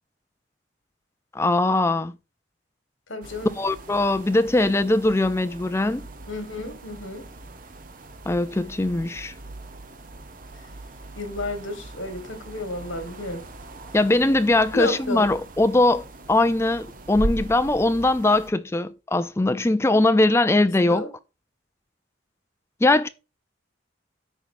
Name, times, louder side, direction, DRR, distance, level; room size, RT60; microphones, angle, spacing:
voice 1, 1.3-2.1 3.6-6.1 8.3-9.3 13.9-21.1 22.8-23.1, left 2 dB, 15° left, 0.4 m, -21 dB
voice 2, 3.1-3.6 6.3-7.3 11.2-13.4 14.7-15.3 20.9-21.1, left 2 dB, 80° left, 1.7 m, -32 dB
sound 1, 3.2-18.5, right 1 dB, 45° right, 0.8 m, -39 dB
13.5 x 4.6 x 2.6 m
head